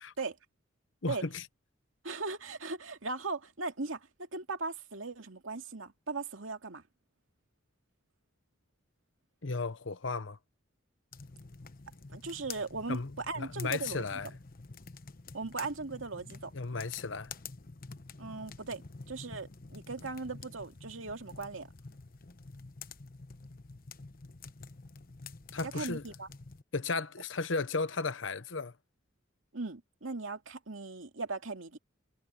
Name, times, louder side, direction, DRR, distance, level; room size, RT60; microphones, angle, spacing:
voice 1, 1.0-1.4 9.4-10.4 12.9-14.3 16.5-17.3 25.5-26.0 26.7-28.7, left 4 dB, 70° left, 1.0 m, -35 dB
voice 2, 2.0-6.8 12.1-14.0 15.3-16.5 18.2-18.8 19.1-21.7 25.6-26.3 29.5-31.8, right 3 dB, 85° right, 2.4 m, -38 dB
sound 1, 11.1-26.6, left 4 dB, 45° left, 1.0 m, -48 dB
head